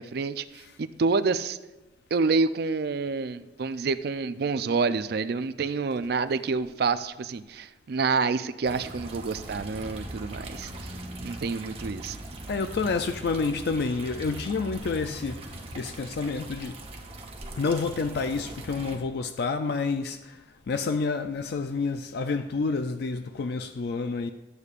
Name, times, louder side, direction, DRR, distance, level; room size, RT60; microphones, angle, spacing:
voice 1, 0.0-1.6 2.1-12.2, right 4 dB, 55° right, 0.4 m, -28 dB
sound 1, 8.6-19.0, right 1 dB, 30° right, 1.0 m, -40 dB
voice 2, 12.5-16.8 17.5-24.3, left 4 dB, 55° left, 0.4 m, -29 dB
13.5 x 8.1 x 2.5 m
head